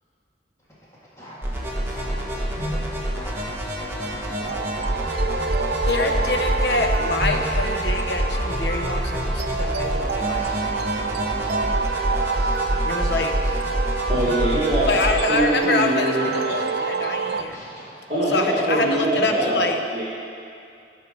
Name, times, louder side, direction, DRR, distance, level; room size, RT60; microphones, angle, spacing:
sound 1, 0.6-7.7 8.1-13.7 14.2-19.5, equal, 15° left, 1.7 m, -42 dB
sound 2, 1.4-15.1, equal, 15° right, 1.1 m, -26 dB
voice 1, 1.5-6.3 11.0-11.3 13.2-13.9, left 1 dB, 40° left, -4 dB, 1.5 m, -46 dB
sound 3, 4.3-17.4, right 5 dB, 60° right, 0.4 m, -28 dB
voice 2, 5.8-10.5 12.8-13.3 14.9-17.6 18.3-19.8, left 3 dB, 60° left, 4 dB, 0.7 m, -26 dB
voice 3, 14.1-14.9 15.3-16.3 18.1-20.0, right 1 dB, 40° right, -9 dB, 1.8 m, -23 dB
10.5 x 4.6 x 6.0 m, 2.5 s
head